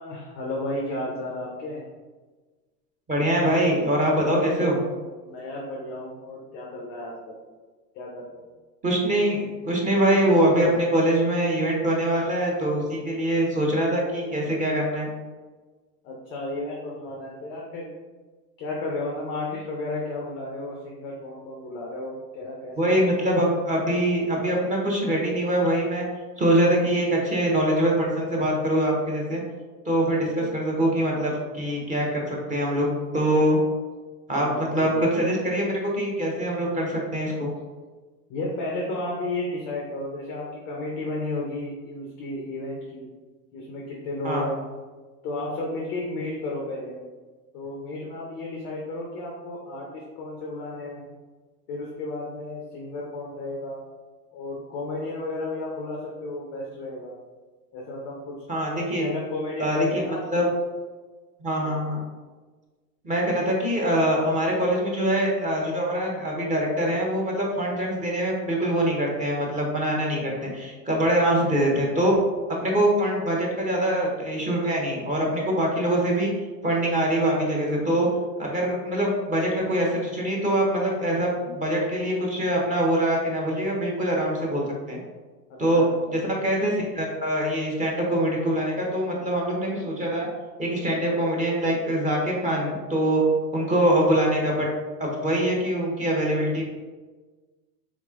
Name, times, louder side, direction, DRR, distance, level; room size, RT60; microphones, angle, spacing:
voice 1, 0.0-1.8 5.2-7.4 7.9-8.5 16.0-17.9 18.6-23.2 30.1-30.5 34.3-35.3 38.3-43.1 43.5-44.7 45.2-47.0 47.5-51.0 51.7-53.8 54.3-57.2 57.7-58.3 59.0-60.5 61.6-61.8 85.5-86.1, left 2 dB, 25° left, -2 dB, 0.3 m, -33 dB
voice 2, 3.1-4.8 8.8-15.1 22.8-26.1 26.4-29.4 29.9-32.9 33.1-33.6 34.3-37.5 44.2-44.5 58.5-59.1 59.6-60.5 61.4-62.0 63.0-72.2 72.6-76.3 76.6-78.1 78.4-85.0 85.6-85.8 86.1-90.3 90.6-93.2 93.5-94.7 95.0-96.7, right 1 dB, 15° right, -2 dB, 0.7 m, -24 dB
3.6 x 3.1 x 2.3 m, 1.3 s
hypercardioid pair, 95°, 49 cm